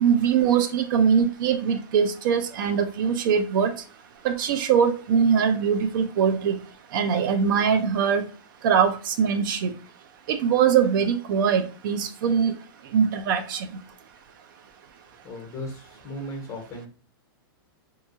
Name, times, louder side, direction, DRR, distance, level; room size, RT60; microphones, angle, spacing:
voice 1, 0.0-3.7 4.2-6.6 6.9-8.2 8.6-9.7 10.3-12.5 12.9-13.7, right 7 dB, 60° right, 9 dB, 0.4 m, -22 dB
voice 2, 15.2-16.9, left 1 dB, 25° left, 1 dB, 1.0 m, -36 dB
2.7 x 2.4 x 2.5 m, 0.37 s
hypercardioid pair, 140°, 12 cm